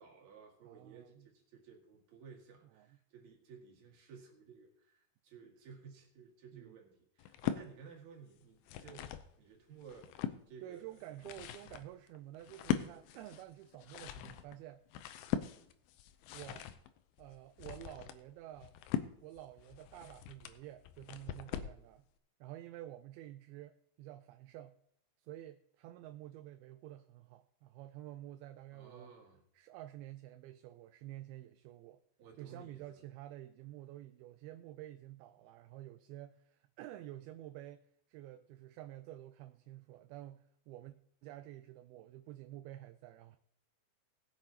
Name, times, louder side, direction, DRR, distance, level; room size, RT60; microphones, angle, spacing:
voice 1, 0.0-10.9 11.6-11.7 28.7-29.4 32.2-33.0, right 6 dB, 50° right, 0 dB, 2.9 m, -56 dB
voice 2, 0.6-1.3 2.7-3.0 6.5-6.8 10.6-14.8 16.3-16.7 17.2-18.7 19.2-22.1 22.4-24.7 25.2-29.1 29.6-32.0 32.4-37.8 38.1-41.0 41.2-43.4, right 14 dB, 85° right, 9 dB, 2.4 m, -50 dB
sound 1, 7.2-7.7 8.4-9.3 9.8-10.4 11.0-21.8, left 10 dB, 80° left, 2.6 m, -41 dB
19.5 x 8.1 x 2.8 m, 0.69 s
omnidirectional pair, 4.5 m